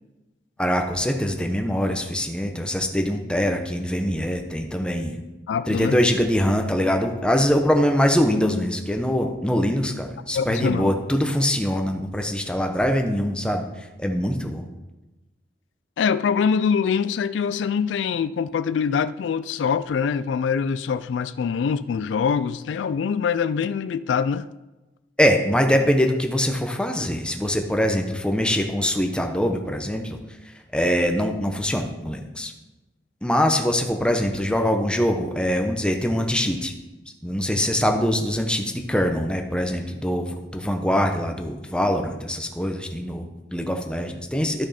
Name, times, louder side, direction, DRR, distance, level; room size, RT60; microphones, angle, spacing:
voice 1, 0.6-5.2 5.7-13.6 14.0-14.7 25.2-30.2 30.7-32.5 33.2-36.7 37.2-44.7, equal, 5° left, 0.8 m, -23 dB
voice 2, 5.5-6.0 10.3-10.9 16.0-24.5, left 6 dB, 85° left, 0.3 m, -24 dB
13.0 x 6.1 x 4.2 m
head